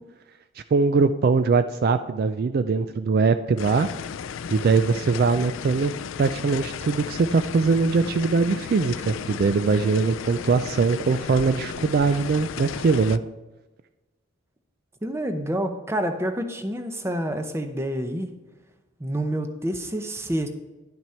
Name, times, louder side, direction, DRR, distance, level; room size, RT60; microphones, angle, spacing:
voice 1, 0.7-3.9 4.5-5.9 6.2-13.2, right 4 dB, 50° right, 10 dB, 0.3 m, -21 dB
sound 1, 3.6-13.2, left 7 dB, 75° left, 0.4 m, -34 dB
voice 2, 15.0-18.3 19.0-20.5, right 1 dB, 15° right, 7 dB, 0.7 m, -28 dB
11.0 x 6.0 x 4.4 m, 1.1 s
head